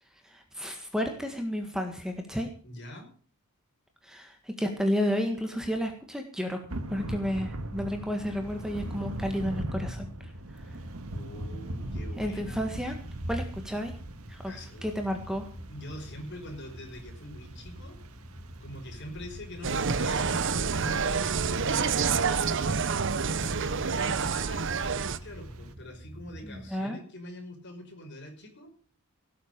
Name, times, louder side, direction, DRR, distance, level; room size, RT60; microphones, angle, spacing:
voice 1, 0.2-2.5 4.0-6.6 6.9-10.8 12.2-13.0 13.3-14.0 14.3-14.5 14.8-15.5 26.4-27.0, equal, 5° right, 4 dB, 1.6 m, -32 dB
voice 2, 2.6-3.1 11.1-12.8 14.5-14.9 15.7-18.0 18.6-22.7 23.3-28.7, left 1 dB, 55° left, 3 dB, 5.3 m, -44 dB
Thunder / Rain, 6.7-25.7, right 1 dB, 80° right, 1.7 m, -41 dB
sound 1, 13.1-26.8, equal, 40° right, 1.6 m, -48 dB
Insect, 19.6-25.2, right 5 dB, 60° right, 0.8 m, -28 dB
17.5 x 7.7 x 6.6 m, 0.41 s
head